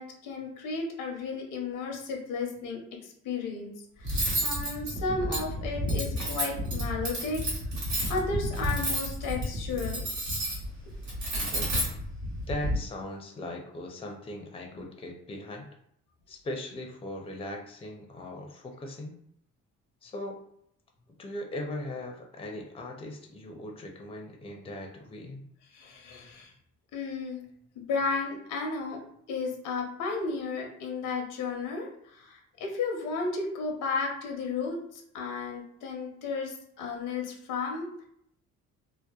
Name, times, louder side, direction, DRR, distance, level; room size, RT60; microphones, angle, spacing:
voice 1, 0.0-3.7 4.0-4.2 4.4-7.4 8.1-10.0 25.7-26.5 26.9-27.4 27.9-29.0 29.3-37.9, left 4 dB, 85° left, 1 dB, 0.7 m, -33 dB
Cutlery silverware, 4.0-12.8, equal, 75° right, 1.1 m, -31 dB
voice 2, 12.5-15.7 16.3-19.2 20.0-20.4 21.2-25.4, left 1 dB, 20° left, 2 dB, 0.5 m, -39 dB
2.7 x 2.0 x 2.3 m, 0.70 s
cardioid pair, 90°, 30 cm